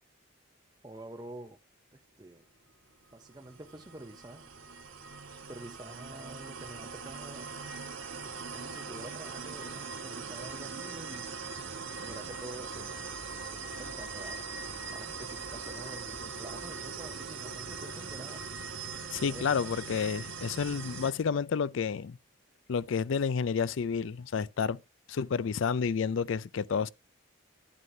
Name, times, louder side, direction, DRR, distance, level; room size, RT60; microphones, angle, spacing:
voice 1, 0.8-1.6 1.9-2.4 3.1-4.4 5.3-7.5 8.5-11.4 12.0-13.0 13.4-14.4 14.9-18.4 19.2-19.4, right 1 dB, 20° right, 0.6 m, -47 dB
sound 1, 3.1-21.1, right 4 dB, 70° right, 1.3 m, -41 dB
voice 2, 19.1-22.2 22.7-24.8 25.1-26.9, left 6 dB, 65° left, 0.4 m, -30 dB
11.0 x 9.4 x 2.7 m
head